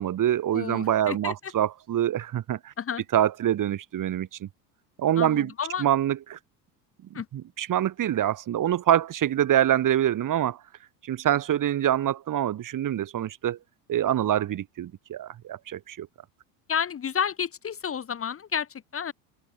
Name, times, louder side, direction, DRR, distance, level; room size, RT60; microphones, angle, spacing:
voice 1, 0.0-2.7 3.1-4.5 5.0-5.5 5.8-6.4 7.3-10.6 11.0-13.6 13.9-16.1, right 11 dB, 40° right, 4.3 m, -25 dB
voice 2, 0.5-1.3 2.8-3.0 5.2-5.9 7.1-7.3 16.7-19.1, left 7 dB, 30° left, 1.9 m, -31 dB
open air
hypercardioid pair, 95°, 47 cm